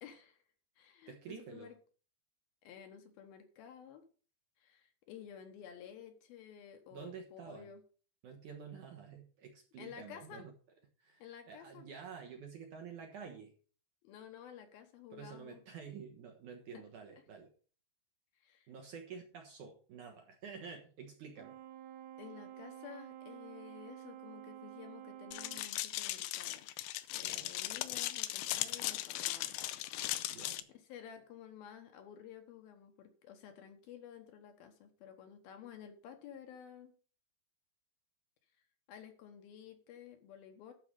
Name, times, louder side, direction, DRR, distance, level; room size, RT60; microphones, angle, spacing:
voice 1, 0.0-0.4 0.8-1.7 2.6-4.0 4.6-7.8 9.8-10.5 11.2-11.8 14.0-15.6 16.7-16.8 18.4-18.7 22.2-26.7 27.1-29.6 30.9-36.9 38.9-40.7, left 9 dB, 70° left, 6 dB, 2.7 m, -52 dB
voice 2, 1.1-1.7 6.9-7.7 8.2-10.5 11.0-13.5 15.1-17.5 18.7-21.6 27.2-27.5 30.3-30.7, right 6 dB, 60° right, 3 dB, 2.3 m, -49 dB
Brass instrument, 21.4-25.8, right 11 dB, 85° right, 3.3 m, -50 dB
sound 1, 25.3-30.6, left 15 dB, 90° left, 2.1 m, -38 dB
12.5 x 4.8 x 6.4 m, 0.40 s
omnidirectional pair, 4.9 m